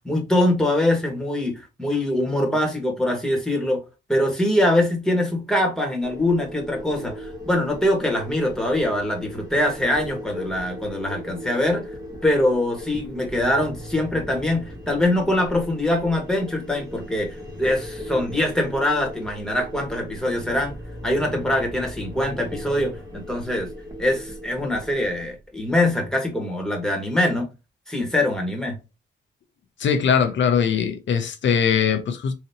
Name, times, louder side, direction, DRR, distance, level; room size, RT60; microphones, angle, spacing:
voice 1, 0.0-3.8 4.1-11.8 12.2-20.7 21.0-23.7 24.0-27.5 27.9-28.8, left 1 dB, 5° left, 1.6 m, -23 dB
sound 1, 6.0-25.1, equal, 20° right, 1.4 m, -39 dB
sound 2, 13.3-26.1, equal, 45° right, 1.3 m, -42 dB
voice 2, 29.8-32.3, left 7 dB, 75° left, 0.6 m, -21 dB
4.0 x 2.8 x 2.8 m
cardioid pair, 90°, 19 cm